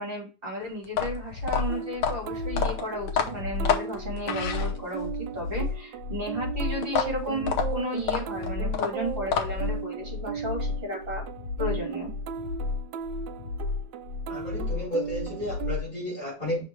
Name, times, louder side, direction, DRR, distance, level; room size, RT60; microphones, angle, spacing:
voice 1, 0.0-11.2 11.6-12.1, equal, 30° right, 2.9 m, -34 dB
sound 1, 0.8-5.2 6.8-9.8, left 7 dB, 70° left, 1.5 m, -29 dB
sound 2, 0.9-15.9, left 4 dB, 90° left, 1.5 m, -33 dB
sound 3, 1.7-15.8, right 7 dB, 80° right, 1.3 m, -37 dB
voice 2, 14.3-16.6, left 1 dB, 20° left, 4.4 m, -32 dB
5.8 x 4.5 x 4.7 m
omnidirectional pair, 2.0 m